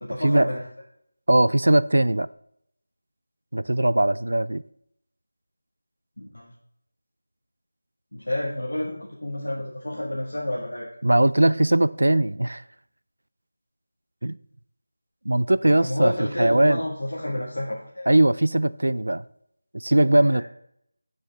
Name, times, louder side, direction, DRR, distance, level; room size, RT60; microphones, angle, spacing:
voice 1, 0.0-0.6 6.2-6.5 8.1-10.9 15.6-18.1 20.3-20.4, left 1 dB, 85° left, 1.7 m, -29 dB
voice 2, 1.3-2.3 3.5-4.6 11.0-12.6 14.2-14.4 15.3-16.1 16.4-16.8 18.1-19.2 19.7-20.4, right 1 dB, 80° right, 0.3 m, -20 dB
7.2 x 6.3 x 3.4 m
figure-of-eight pair, 170°, 0 cm